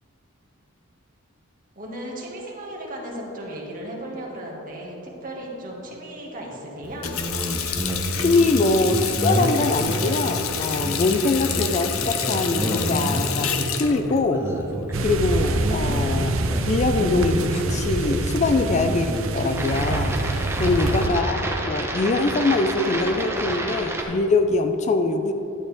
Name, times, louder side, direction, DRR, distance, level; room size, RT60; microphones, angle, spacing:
voice 1, 1.8-7.1 20.7-21.2, right 1 dB, 40° right, -3 dB, 1.8 m, -36 dB
Water tap faucet, 6.8-15.3, left 8 dB, 80° left, 0.7 m, -29 dB
sound 1, 7.0-24.0, right 1 dB, 10° right, 0.8 m, -29 dB
voice 2, 8.1-14.5 15.0-16.4 16.6-25.3, left 3 dB, 35° left, 7 dB, 0.4 m, -23 dB
sound 2, 14.9-21.1, right 2 dB, 70° right, 0.6 m, -26 dB
11.5 x 8.5 x 3.4 m, 2.9 s
head